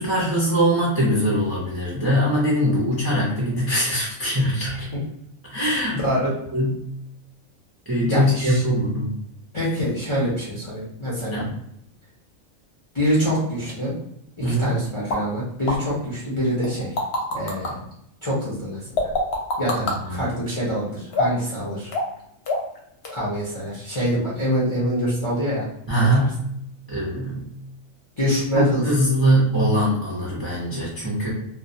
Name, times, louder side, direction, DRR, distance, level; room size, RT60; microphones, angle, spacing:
voice 1, 0.0-4.9 5.5-6.8 7.9-9.1 11.3-11.5 14.4-14.8 19.8-20.4 25.9-26.4 26.9-27.5 28.5-31.3, equal, 35° right, -6 dB, 0.3 m, -22 dB
voice 2, 8.1-8.6 9.5-11.5 12.9-13.9 14.4-17.0 17.3-17.8 18.2-19.1 19.6-21.9 23.1-25.7 26.0-26.3 28.2-28.8, equal, 40° left, -7 dB, 0.4 m, -25 dB
sound 1, 15.1-15.2 15.7-15.8 16.6-17.7 19.0-20.0 21.1-21.5 21.9-22.2 22.5-22.8 23.0-23.1, left 1 dB, 60° left, 0.8 m, -23 dB
2.2 x 2.2 x 2.6 m, 0.77 s
omnidirectional pair, 1.4 m